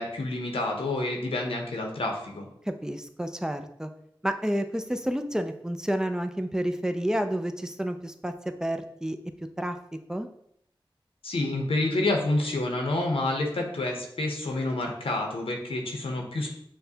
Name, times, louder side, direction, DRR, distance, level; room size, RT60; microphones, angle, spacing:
voice 1, 0.0-2.5 11.2-16.6, left 2 dB, 90° left, 1 dB, 0.7 m, -28 dB
voice 2, 2.6-3.9 4.2-9.2 9.6-9.8 10.1-10.3, equal, 5° right, 7 dB, 0.4 m, -30 dB
6.2 x 2.2 x 2.7 m, 0.71 s
cardioid pair, 45°, 9 cm